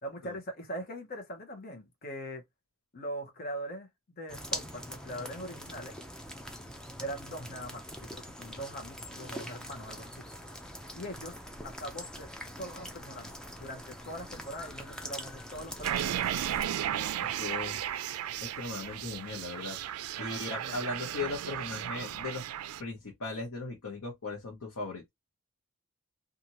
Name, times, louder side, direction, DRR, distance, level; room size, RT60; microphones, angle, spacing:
voice 1, 0.0-2.4 2.9-3.9 4.2-6.0 7.0-10.2 10.9-11.4 11.6-12.3 12.6-16.2 20.2-21.0, equal, 40° left, 0.9 m, -41 dB
sound 1, 4.3-16.7, equal, 5° left, 0.4 m, -43 dB
sound 2, 15.8-22.8, right 11 dB, 80° right, 0.3 m, -34 dB
voice 2, 16.9-17.8 18.4-19.8 20.2-22.4 22.8-25.0, left 3 dB, 75° left, 0.9 m, -38 dB
2.7 x 2.5 x 2.9 m
head